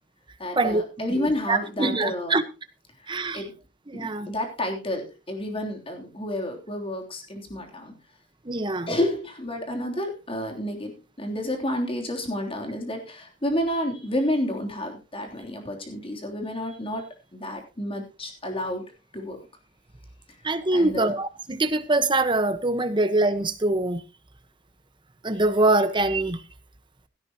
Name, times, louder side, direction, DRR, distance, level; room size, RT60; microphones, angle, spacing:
voice 1, 0.4-2.4 3.0-3.5 3.9-7.9 8.9-10.9 11.2-17.0 17.3-18.9 19.1-19.4 20.7-21.1, left 1 dB, 30° left, 3.3 m, -30 dB
voice 2, 1.1-2.4 3.1-3.4 3.9-4.3 8.4-8.9 20.4-24.0 25.2-26.4, right 2 dB, 25° right, 1.2 m, -24 dB
16.5 x 13.0 x 3.0 m
head